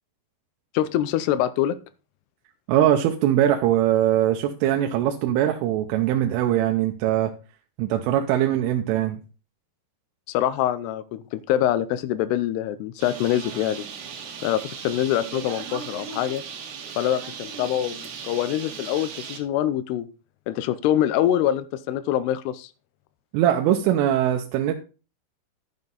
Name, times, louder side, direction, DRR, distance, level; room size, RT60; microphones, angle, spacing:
voice 1, 0.7-1.8 10.3-13.8 14.4-16.4 17.0-20.1 20.5-22.7, left 11 dB, 85° left, 2.4 m, -24 dB
voice 2, 2.7-7.3 7.8-9.2 23.3-24.8, right 11 dB, 90° right, 3.3 m, -21 dB
Bird, 13.0-19.4, right 6 dB, 70° right, 3.7 m, -37 dB
12.0 x 7.4 x 4.0 m
omnidirectional pair, 5.5 m